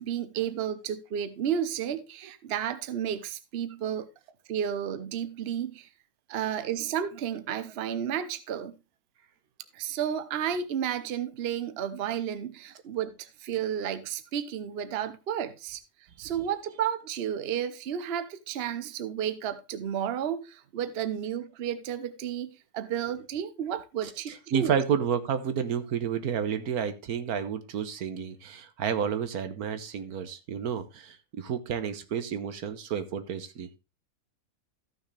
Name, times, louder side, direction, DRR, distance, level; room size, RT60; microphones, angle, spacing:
voice 1, 0.0-4.1 4.5-5.9 6.3-8.8 9.7-15.8 16.2-24.8, right 9 dB, 50° right, 0.9 m, -32 dB
voice 2, 24.0-33.8, right 7 dB, 80° right, 1.5 m, -31 dB
14.0 x 6.4 x 3.3 m
omnidirectional pair, 1.6 m